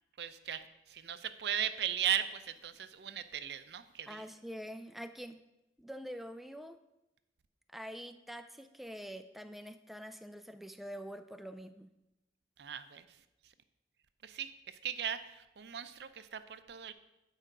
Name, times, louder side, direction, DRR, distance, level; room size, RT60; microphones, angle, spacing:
voice 1, 0.2-4.2 12.6-13.5 14.2-16.9, right 9 dB, 70° right, 11 dB, 0.5 m, -38 dB
voice 2, 4.1-5.4 5.8-6.8 7.7-11.9, equal, ahead, 9 dB, 0.3 m, -45 dB
9.0 x 4.9 x 6.0 m, 0.93 s
head